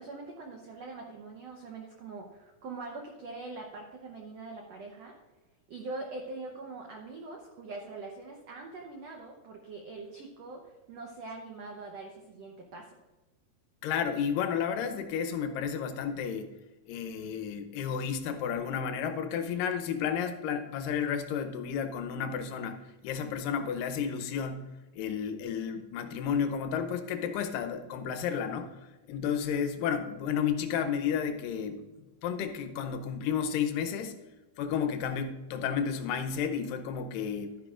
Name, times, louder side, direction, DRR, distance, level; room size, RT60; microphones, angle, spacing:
voice 1, 0.0-5.1 5.7-13.0, right 3 dB, 85° right, 1 dB, 1.4 m, -43 dB
voice 2, 13.8-16.5 16.9-24.6 24.9-28.7 29.1-31.8 32.2-34.1 34.6-37.6, left 7 dB, 75° left, 7 dB, 2.3 m, -32 dB
12.5 x 10.5 x 2.5 m, 1.1 s
omnidirectional pair, 4.3 m